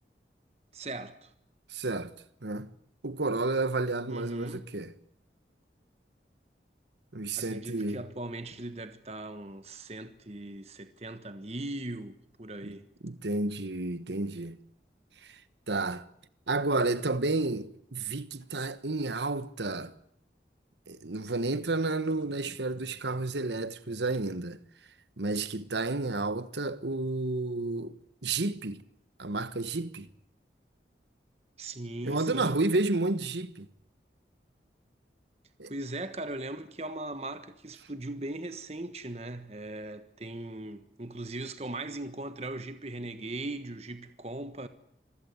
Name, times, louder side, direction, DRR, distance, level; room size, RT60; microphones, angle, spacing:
voice 1, 0.7-1.3 4.1-4.6 7.4-12.9 31.6-32.6 35.7-44.7, right 2 dB, 35° right, 1.3 m, -39 dB
voice 2, 1.7-2.1 2.4-2.7 3.0-4.9 7.1-8.0 12.6-12.7 13.0-14.6 15.2-15.4 15.7-16.0 16.5-19.9 20.9-24.6 25.2-27.9 28.2-28.8 29.2-30.1 32.0-33.7 35.6-35.7, right 2 dB, 80° right, 1.3 m, -31 dB
26.0 x 15.5 x 9.6 m
head